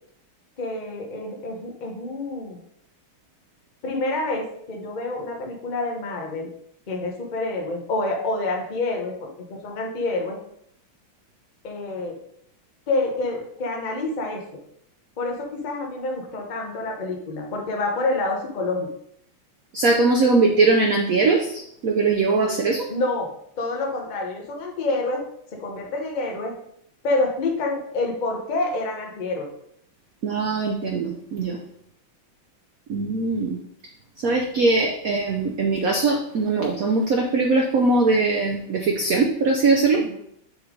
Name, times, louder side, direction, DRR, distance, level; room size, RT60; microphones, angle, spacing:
voice 1, 0.6-2.6 3.8-6.5 6.9-10.4 11.6-12.2 12.9-14.6 15.2-18.9 22.9-23.3 23.6-25.2 25.5-26.5 27.0-29.5 39.9-40.2, left 2 dB, 40° left, 1 dB, 0.6 m, -27 dB
voice 2, 19.7-22.9 30.2-31.6 32.9-33.6 34.2-40.0, right 3 dB, 80° right, 2 dB, 0.7 m, -21 dB
7.0 x 3.3 x 5.0 m, 0.71 s
omnidirectional pair, 2.4 m